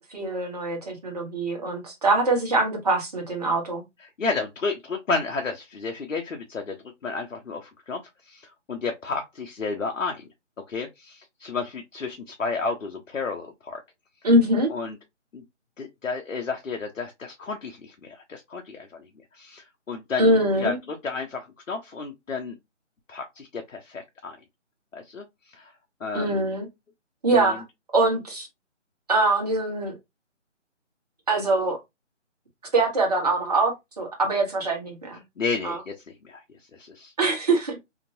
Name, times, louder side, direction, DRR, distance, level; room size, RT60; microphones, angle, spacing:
voice 1, 0.1-3.8 14.2-14.7 20.2-20.8 26.1-26.7 27.2-27.6 27.9-28.5 29.1-29.9 31.3-31.8 32.7-35.2 35.6-35.8 37.2-37.8, right 2 dB, 30° right, 1.2 m, -23 dB
voice 2, 4.0-6.8 7.0-10.3 10.7-13.8 14.7-15.0 15.3-15.4 15.8-22.6 23.1-24.4 24.9-25.7 26.0-26.4 27.3-27.6 35.4-37.1, left 4 dB, 80° left, 0.9 m, -32 dB
2.9 x 2.6 x 2.6 m
figure-of-eight pair, 165°, 37 cm